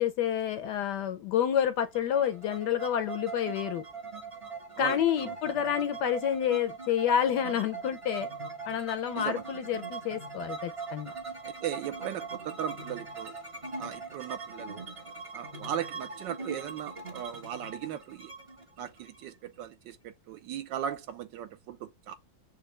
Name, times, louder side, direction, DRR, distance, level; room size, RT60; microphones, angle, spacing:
voice 1, 0.0-3.8 4.8-8.3 8.7-11.1, left 9 dB, 75° left, 1.0 m, -29 dB
sound 1, 1.9-19.6, right 4 dB, 30° right, 0.5 m, -41 dB
voice 2, 4.8-5.3 9.2-9.4 11.4-13.3 13.8-14.8 15.3-18.3 18.8-22.1, right 10 dB, 75° right, 1.2 m, -38 dB
6.5 x 2.6 x 3.0 m
omnidirectional pair, 2.1 m